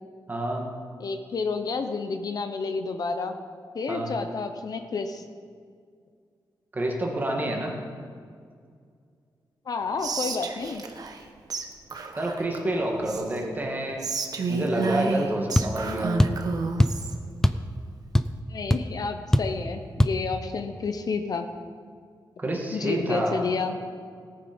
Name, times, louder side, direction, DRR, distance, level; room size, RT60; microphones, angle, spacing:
voice 1, 0.3-0.7 3.9-4.2 6.7-7.7 12.2-14.1 14.5-16.1 22.4-23.4, right 1 dB, 25° right, 0 dB, 1.9 m, -28 dB
voice 2, 1.0-3.4 3.7-5.2 9.7-10.8 18.5-21.5 22.7-23.7, left 4 dB, 55° left, 7 dB, 0.8 m, -30 dB
Whispering, 10.0-11.2 11.5-11.6 11.9-13.4 14.0-17.1, right 3 dB, 55° right, 1.1 m, -30 dB
sound 1, 15.5-15.7 16.2-16.4 16.8-17.0 17.4-17.7 17.9-18.4 18.7-18.8 19.3-19.6 20.0-20.2, left 1 dB, 5° left, 0.4 m, -21 dB
18.0 x 9.0 x 5.3 m, 2.1 s
wide cardioid pair, 165°, 8 cm